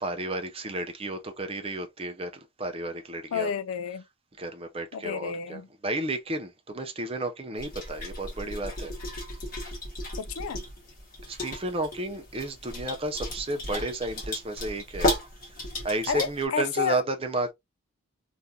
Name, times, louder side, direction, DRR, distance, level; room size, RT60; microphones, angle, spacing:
voice 1, 0.0-2.3 2.6-3.5 4.4-8.9 11.3-15.1 15.5-17.5, right 2 dB, 25° right, 0.5 m, -32 dB
voice 2, 3.3-4.0 4.9-5.7 10.2-10.6 16.1-17.0, left 6 dB, 75° left, 0.4 m, -30 dB
sound 1, 7.6-16.4, left 1 dB, 40° left, 1.4 m, -34 dB
3.6 x 2.6 x 2.7 m
head